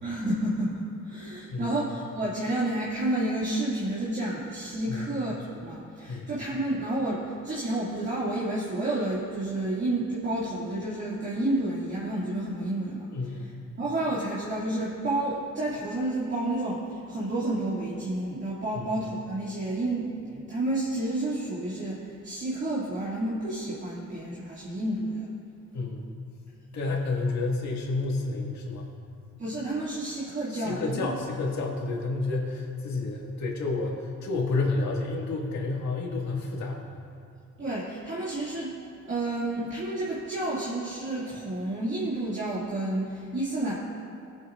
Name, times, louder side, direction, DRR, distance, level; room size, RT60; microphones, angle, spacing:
voice 1, 0.0-13.1 13.8-25.3 29.4-31.1 37.6-38.7 39.1-43.7, right 1 dB, 40° right, -9 dB, 2.3 m, -30 dB
voice 2, 13.1-13.6 18.7-18.9 25.7-26.1 26.7-28.9 30.5-36.8, left 3 dB, 65° left, -2 dB, 2.2 m, -30 dB
19.0 x 7.9 x 2.6 m, 2.5 s
cardioid pair, 90°, 30 cm